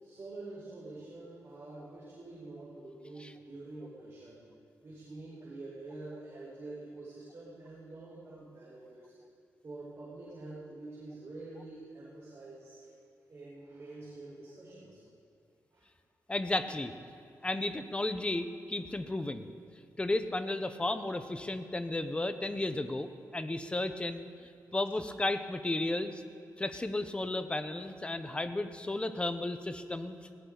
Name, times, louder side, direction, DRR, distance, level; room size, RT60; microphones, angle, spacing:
voice 1, 0.0-4.4 4.8-9.1 9.6-12.9 13.3-15.0 15.7-15.8, right 2 dB, 40° right, -7 dB, 4.6 m, -47 dB
voice 2, 16.3-16.9 17.4-19.5 20.0-26.2 26.6-30.2, left 2 dB, 15° left, 9 dB, 0.8 m, -34 dB
20.5 x 17.0 x 4.0 m, 2.4 s
wide cardioid pair, 140°, 6 cm